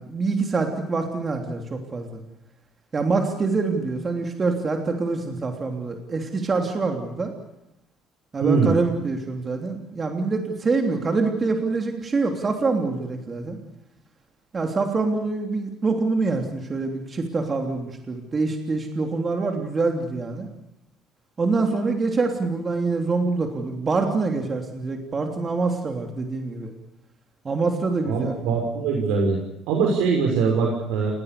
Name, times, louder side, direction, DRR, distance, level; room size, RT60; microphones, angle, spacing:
voice 1, 0.0-2.2 2.9-7.3 8.3-13.6 14.5-20.5 21.4-26.7 27.4-28.4, right 3 dB, 25° right, 3 dB, 3.3 m, -25 dB
voice 2, 8.4-8.7 28.1-29.4 29.7-31.1, right 5 dB, 85° right, 0 dB, 6.0 m, -22 dB
30.0 x 19.5 x 6.9 m, 0.86 s
cardioid pair, 125°, 0 cm